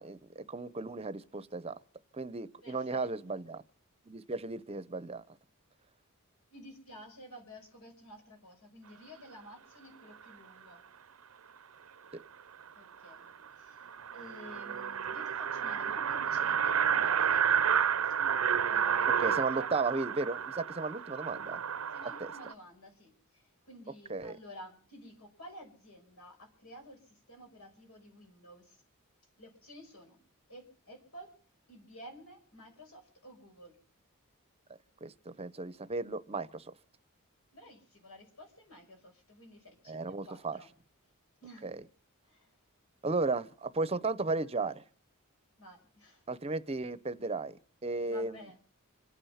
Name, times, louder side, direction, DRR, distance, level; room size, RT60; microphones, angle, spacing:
voice 1, 0.0-1.8 2.1-3.6 4.1-5.4 19.2-21.6 22.2-22.3 24.1-24.4 35.0-36.7 39.9-40.6 41.6-41.8 43.0-44.8 46.3-47.6 47.8-48.5, right 3 dB, 30° right, 15 dB, 0.7 m, -35 dB
voice 2, 2.6-3.4 6.5-10.8 12.8-13.3 13.6-13.8 14.1-17.6 18.5-19.7 21.9-28.8 29.4-30.2 30.5-31.3 31.7-33.8 37.5-40.7 41.4-41.7 42.3-42.5 45.6-46.2 48.1-48.6, equal, 85° left, 3 dB, 5.8 m, -52 dB
sound 1, 12.6-12.7 13.1-13.2 13.5-13.6 13.8-22.5, right 8 dB, 75° right, 0.6 m, -30 dB
26.5 x 9.1 x 5.6 m, 0.44 s
head